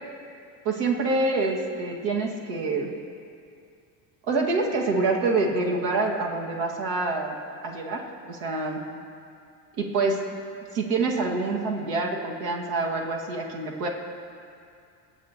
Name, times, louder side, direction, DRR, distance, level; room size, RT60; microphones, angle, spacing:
voice 1, 0.7-2.9 4.3-7.4 7.6-8.8 9.8-10.2 10.7-13.9, right 3 dB, 70° right, 0 dB, 2.0 m, -26 dB
23.0 x 9.7 x 2.9 m, 2.4 s
supercardioid pair, 90°, 48 cm